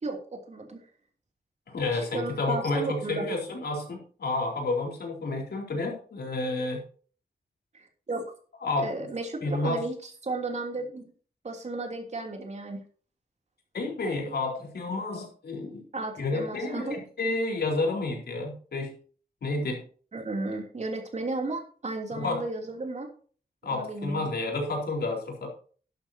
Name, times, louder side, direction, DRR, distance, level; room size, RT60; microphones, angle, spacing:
voice 1, 0.0-0.8 1.9-3.2 7.7-8.2 8.8-11.0 11.4-12.8 15.9-17.0 20.1-23.1 23.7-24.3, right 2 dB, 45° right, 2 dB, 3.1 m, -34 dB
voice 2, 1.7-6.8 8.6-8.9 9.4-9.8 13.7-15.8 16.2-19.0 19.4-19.8 22.1-22.5 23.6-25.5, left 2 dB, 85° left, 0 dB, 4.2 m, -30 dB
12.5 x 11.5 x 2.9 m, 0.41 s
wide cardioid pair, 150°, 16 cm